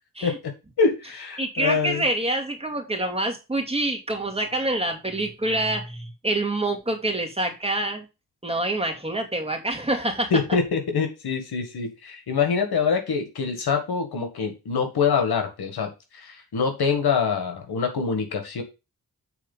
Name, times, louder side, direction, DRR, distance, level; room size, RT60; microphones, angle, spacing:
voice 1, 0.8-2.1 10.3-18.6, left 5 dB, 90° left, 5 dB, 1.8 m, -25 dB
voice 2, 1.4-8.0 8.4-10.3, right 1 dB, 15° right, 1 dB, 2.5 m, -26 dB
8.3 x 4.2 x 5.4 m, 0.27 s
cardioid pair, 65°, 37 cm